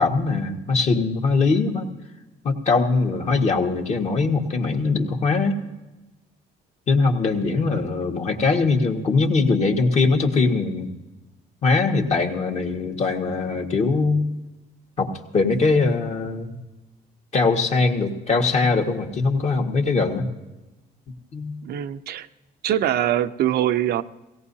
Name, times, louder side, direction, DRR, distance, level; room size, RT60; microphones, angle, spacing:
voice 1, 0.0-1.9 2.4-5.6 6.9-10.9 11.6-14.2 15.0-16.6 17.3-20.2 21.3-21.6, left 4 dB, 40° left, 2 dB, 1.8 m, -21 dB
voice 2, 21.6-22.3 22.6-24.0, right 11 dB, 70° right, 11 dB, 0.6 m, -23 dB
18.0 x 17.5 x 2.8 m, 1.1 s
cardioid pair, 110°, 17 cm